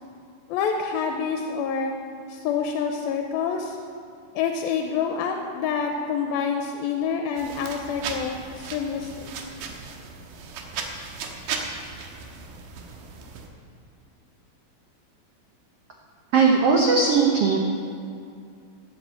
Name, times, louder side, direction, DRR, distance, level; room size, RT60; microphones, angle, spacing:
voice 1, 0.5-1.9 2.3-3.8 4.4-9.4, left 6 dB, 80° left, 4 dB, 2.4 m, -27 dB
sound 1, 7.4-13.5, right 5 dB, 70° right, 2.4 m, -36 dB
voice 2, 16.3-17.6, right 4 dB, 85° right, -1 dB, 1.3 m, -18 dB
12.5 x 8.1 x 7.6 m, 2.4 s
omnidirectional pair, 4.4 m